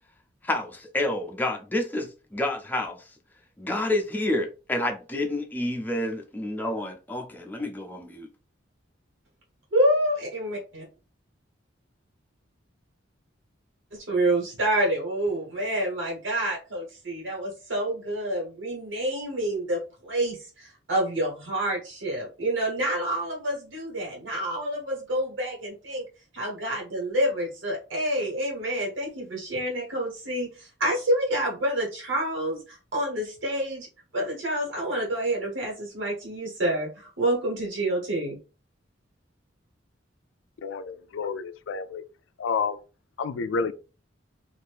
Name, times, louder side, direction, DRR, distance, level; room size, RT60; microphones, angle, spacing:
voice 1, 0.4-3.0 3.6-8.3, left 1 dB, 10° left, 0.5 m, -29 dB
voice 2, 9.7-10.8 14.1-26.0 26.3-33.9 34.1-38.4, right 1 dB, 85° right, 1.4 m, -28 dB
voice 3, 40.6-42.0 42.4-42.8 43.2-43.7, left 5 dB, 80° left, 0.3 m, -29 dB
2.7 x 2.5 x 3.3 m
head